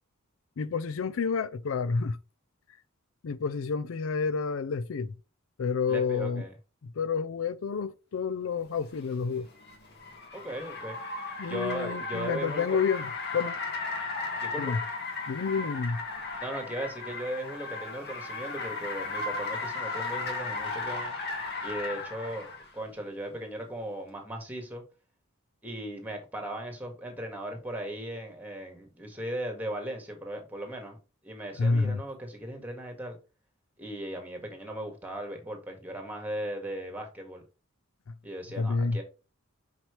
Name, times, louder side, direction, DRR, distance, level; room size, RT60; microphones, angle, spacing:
voice 1, 0.6-2.2 3.2-5.1 5.6-6.4 6.8-9.5 11.4-13.6 14.6-14.8 15.3-16.0 31.6-32.0 38.6-39.0, left 5 dB, 75° left, 0.4 m, -29 dB
voice 2, 5.9-6.5 10.3-11.0 11.4-12.8 14.4-14.8 16.4-21.1 21.6-24.8 25.6-31.0 31.2-33.2 33.8-37.4 38.2-39.0, right 1 dB, 10° right, 1.9 m, -37 dB
Car, 8.8-22.7, left 3 dB, 50° left, 1.9 m, -36 dB
6.0 x 5.9 x 3.2 m
head